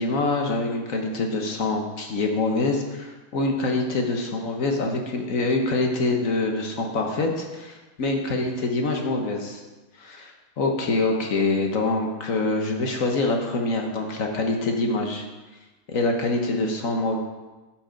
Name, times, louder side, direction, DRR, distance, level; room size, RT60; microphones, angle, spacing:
voice 1, 0.0-9.6 10.0-15.3 15.9-17.2, left 2 dB, 50° left, 2 dB, 1.2 m, -25 dB
12.0 x 6.1 x 5.1 m, 1.2 s
omnidirectional pair, 2.3 m